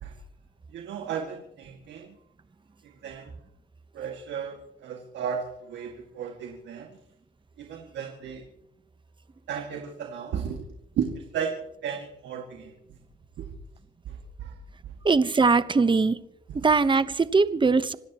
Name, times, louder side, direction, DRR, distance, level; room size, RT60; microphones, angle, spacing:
voice 1, 0.7-2.2 3.0-3.3 3.9-7.0 7.6-8.4 9.5-10.7 11.0-12.7 13.4-13.5 14.1-14.6 15.7-15.9 16.5-16.6, right 7 dB, 75° right, 3 dB, 2.2 m, -34 dB
voice 2, 15.0-16.2 16.6-17.9, right 4 dB, 25° right, 13 dB, 1.1 m, -21 dB
26.5 x 17.0 x 3.1 m, 0.81 s
supercardioid pair, 60°, 19 cm